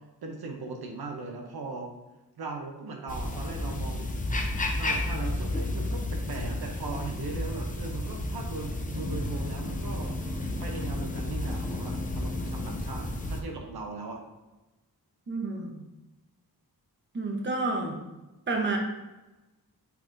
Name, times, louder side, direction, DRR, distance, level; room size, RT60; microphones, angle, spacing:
voice 1, 0.2-1.9 2.4-4.2 4.7-10.1 10.6-14.2, right 3 dB, 70° right, 1 dB, 0.8 m, -38 dB
sound 1, 3.1-13.4, left 1 dB, 20° left, 0.5 m, -32 dB
voice 2, 15.3-15.8 17.1-18.0 18.5-18.8, right 3 dB, 30° right, 1 dB, 0.8 m, -30 dB
5.8 x 3.5 x 2.6 m, 1.0 s
wide cardioid pair, 95°, 38 cm